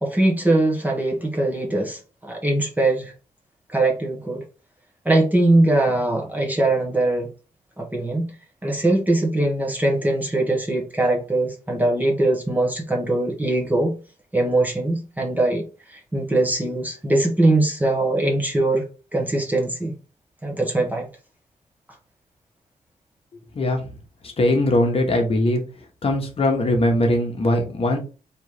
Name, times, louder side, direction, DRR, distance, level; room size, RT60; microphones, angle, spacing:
voice 1, 0.0-3.1 3.7-4.4 5.0-7.3 7.8-8.3 8.6-14.0 14.3-18.8 19.1-19.9 20.4-21.1, right 2 dB, 10° right, 0 dB, 1.0 m, -21 dB
voice 2, 23.5-23.9 24.4-25.6 26.0-28.0, left 1 dB, 45° left, 2 dB, 1.2 m, -20 dB
3.6 x 2.9 x 4.8 m, 0.34 s
wide cardioid pair, 155°, 14 cm